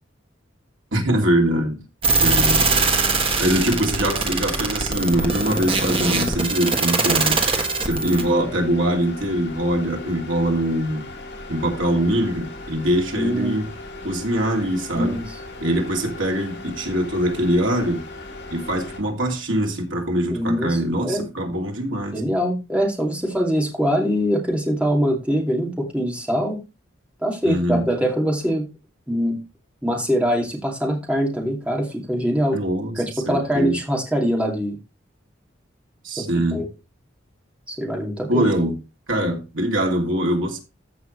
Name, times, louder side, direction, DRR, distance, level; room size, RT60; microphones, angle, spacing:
voice 1, 0.9-1.8 2.2-2.7 3.4-7.5 7.8-11.1 11.5-13.7 14.0-15.2 15.6-18.0 18.5-22.2 27.4-27.8 32.5-33.8 36.0-36.6 38.3-38.7 39.1-40.6, right 1 dB, 80° right, 2.8 m, -23 dB
sound 1, 2.0-19.0, left 2 dB, 60° left, 4.1 m, -37 dB
sound 2, 2.0-8.2, right 3 dB, 30° right, 1.4 m, -21 dB
voice 2, 13.2-13.6 14.9-15.3 20.3-21.2 22.1-26.6 27.2-28.7 29.1-29.4 29.8-32.6 33.0-34.8 36.2-36.3 36.5-36.7 37.7-38.5, equal, 5° right, 2.5 m, -23 dB
14.5 x 5.8 x 3.2 m
head